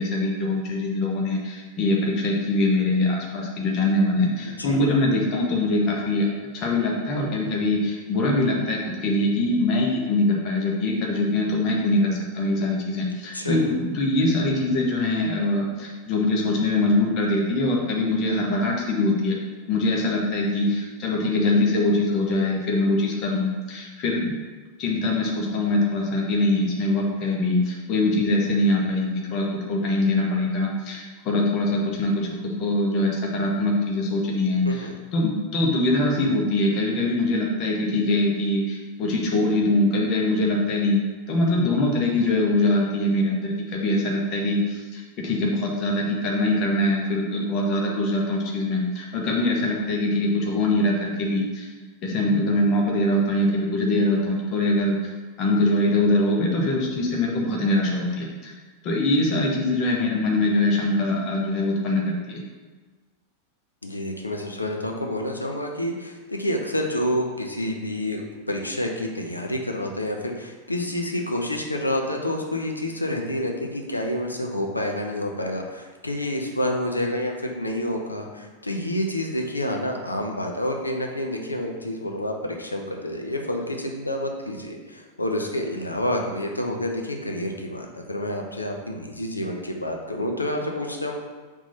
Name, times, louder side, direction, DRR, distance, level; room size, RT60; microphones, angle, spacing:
voice 1, 0.0-19.4 19.7-24.4 24.8-51.7 52.0-55.1 55.4-58.6 58.8-62.4, left 2 dB, 40° left, -1 dB, 1.1 m, -23 dB
voice 2, 4.5-4.8 13.3-13.6 34.6-34.9 63.8-91.1, left 1 dB, 85° left, 2 dB, 0.7 m, -28 dB
5.0 x 3.6 x 5.5 m, 1.3 s
figure-of-eight pair, 90°, 0 cm